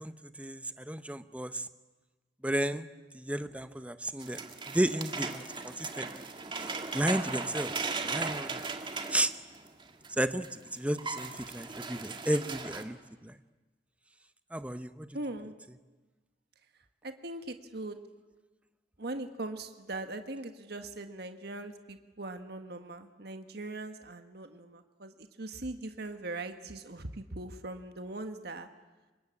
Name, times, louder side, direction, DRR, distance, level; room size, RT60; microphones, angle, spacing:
voice 1, 0.0-1.7 2.4-2.9 3.1-6.2 6.5-8.6 9.1-9.3 10.1-13.4 14.5-15.1, right 1 dB, 5° right, 11 dB, 0.8 m, -33 dB
sound 1, 4.2-10.1 10.4-10.5 10.8-12.8, right 4 dB, 25° right, 1.8 m, -38 dB
voice 2, 15.1-15.5 17.0-18.0 19.0-28.7, right 2 dB, 65° right, 7 dB, 1.6 m, -40 dB
25.5 x 22.0 x 8.7 m, 1.2 s
head